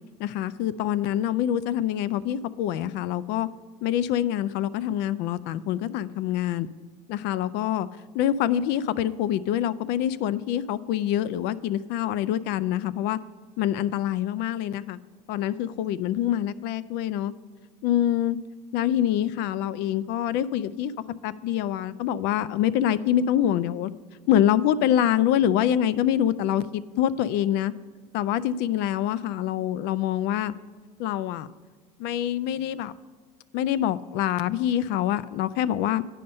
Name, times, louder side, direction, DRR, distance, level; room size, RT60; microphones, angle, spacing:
voice 1, 0.2-3.5 3.8-6.7 7.1-7.9 8.1-13.2 13.6-15.0 15.3-17.3 17.8-18.4 18.7-20.9 21.2-23.9 24.3-27.7 28.1-30.5 31.0-31.5 32.0-32.9 33.5-36.0, left 11 dB, 55° left, 17 dB, 0.4 m, -25 dB
9.2 x 5.4 x 5.3 m, 1.5 s
hypercardioid pair, 90°, 21 cm